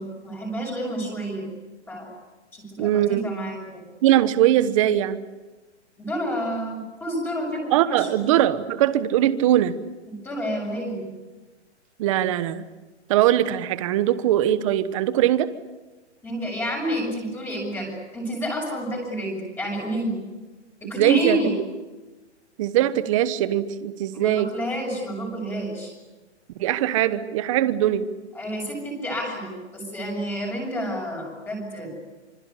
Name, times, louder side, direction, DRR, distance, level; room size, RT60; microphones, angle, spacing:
voice 1, 0.0-1.5 1.9-2.1 2.5-3.8 6.0-8.3 10.1-11.1 16.2-20.2 20.8-21.5 24.1-25.9 28.3-31.9, right 1 dB, 5° left, -1 dB, 6.6 m, -29 dB
voice 2, 2.8-3.3 4.0-5.2 7.7-9.8 12.0-12.6 13.1-15.5 21.0-21.4 22.6-24.5 26.6-28.1, right 12 dB, 30° right, 13 dB, 1.2 m, -21 dB
26.5 x 26.0 x 8.4 m, 1.2 s
hypercardioid pair, 165°, 35 cm